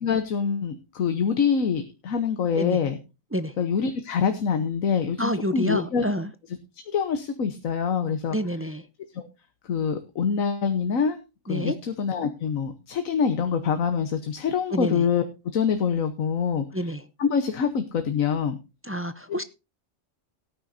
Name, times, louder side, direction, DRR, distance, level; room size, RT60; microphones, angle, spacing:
voice 1, 0.0-3.0 3.6-6.1 6.9-8.4 9.1-9.3 9.6-11.2 11.5-15.2 15.5-16.9 17.2-18.6 19.3-19.4, left 6 dB, 85° left, 1.5 m, -25 dB
voice 2, 5.2-6.3 8.3-8.8 11.5-11.7 14.7-15.0 16.7-17.0 18.8-19.4, equal, 15° right, 0.4 m, -28 dB
17.5 x 9.6 x 2.7 m
omnidirectional pair, 1.4 m